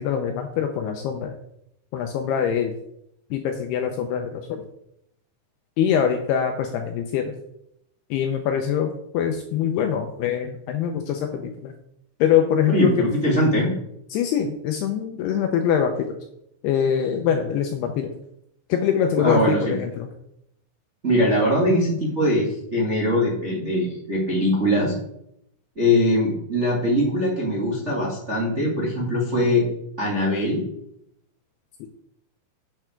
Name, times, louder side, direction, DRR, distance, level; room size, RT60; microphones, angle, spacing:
voice 1, 0.0-1.3 1.9-2.7 3.3-4.6 5.8-7.3 8.1-11.7 12.2-12.9 14.1-16.0 16.6-18.1 18.7-20.1 31.8-31.9, left 8 dB, 80° left, 5 dB, 2.4 m, -23 dB
voice 2, 12.7-13.7 19.2-19.8 21.0-24.9 25.7-29.7 30.0-30.6, equal, 70° right, -4 dB, 0.6 m, -21 dB
8.8 x 8.0 x 4.5 m, 0.77 s
omnidirectional pair, 5.4 m